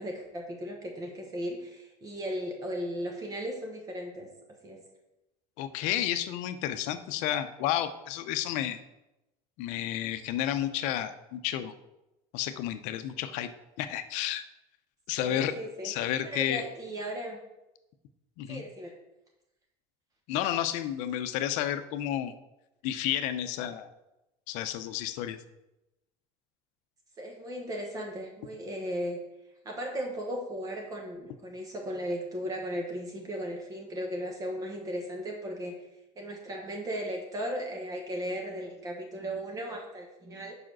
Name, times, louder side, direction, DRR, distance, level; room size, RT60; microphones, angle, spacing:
voice 1, 0.0-4.3 4.6-4.8 15.2-15.9 16.2-17.4 18.5-18.9 27.2-29.2 29.6-35.7 36.2-40.6, equal, 25° right, 1 dB, 1.1 m, -36 dB
voice 2, 5.6-8.8 9.6-11.7 12.3-13.5 13.8-14.4 15.1-15.6 15.8-16.6 18.4-18.6 20.3-22.3 22.8-23.9 24.5-25.4, left 11 dB, 70° left, 10 dB, 0.6 m, -31 dB
5.0 x 4.9 x 6.1 m, 0.94 s
cardioid pair, 135°, 13 cm